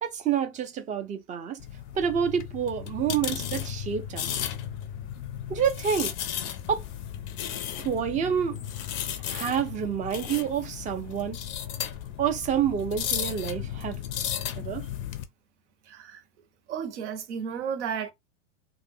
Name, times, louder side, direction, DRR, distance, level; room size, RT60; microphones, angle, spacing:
voice 1, 0.0-1.6 1.9-4.4 5.5-6.1 6.7-6.8 7.8-8.6 9.3-11.4 12.2-14.0 14.6-14.9, right 8 dB, 20° right, 0.5 m, -28 dB
sound 1, 1.6-15.2, left 10 dB, 35° left, 0.4 m, -35 dB
voice 2, 15.9-16.2 16.7-18.1, right 7 dB, 75° right, 0.9 m, -33 dB
2.4 x 2.1 x 3.5 m
hypercardioid pair, 120°, 36 cm